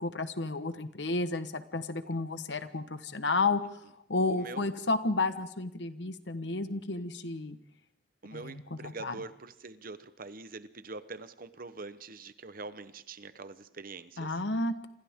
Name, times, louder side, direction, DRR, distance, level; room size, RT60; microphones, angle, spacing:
voice 1, 0.0-3.6 4.1-7.6 8.3-9.1 14.2-14.9, left 3 dB, 65° left, 11 dB, 1.3 m, -32 dB
voice 2, 4.3-4.7 8.2-14.4, right 3 dB, 50° right, 13 dB, 1.0 m, -44 dB
28.0 x 26.0 x 3.7 m, 0.80 s
head